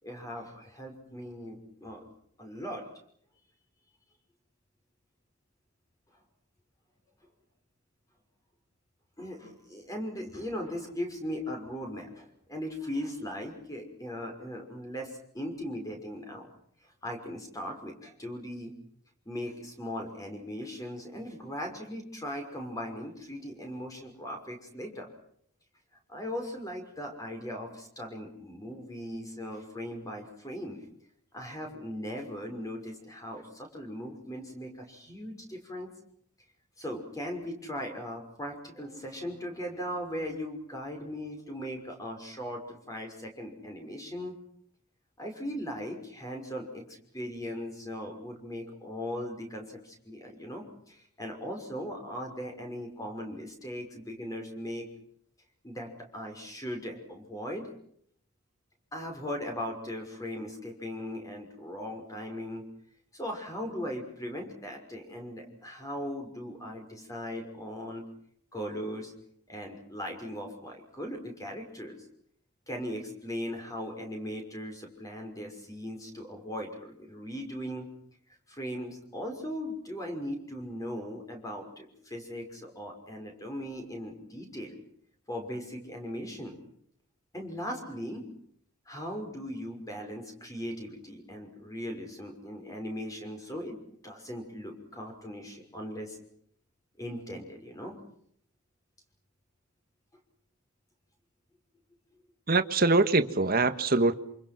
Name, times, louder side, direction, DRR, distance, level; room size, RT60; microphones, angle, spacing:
voice 1, 0.0-2.0 2.4-2.9 9.2-16.5 17.0-18.7 19.3-25.1 26.1-30.8 31.3-35.9 36.8-44.4 45.2-54.9 55.6-57.7 58.9-62.6 63.1-68.0 68.5-69.1 69.5-72.0 72.7-77.9 78.5-84.8 85.3-86.6 87.3-88.3 88.9-93.8 94.0-96.2 97.0-97.9, equal, 15° left, 5.9 m, -38 dB
voice 2, 102.5-104.1, right 3 dB, 40° right, 1.5 m, -23 dB
27.5 x 27.0 x 6.1 m
head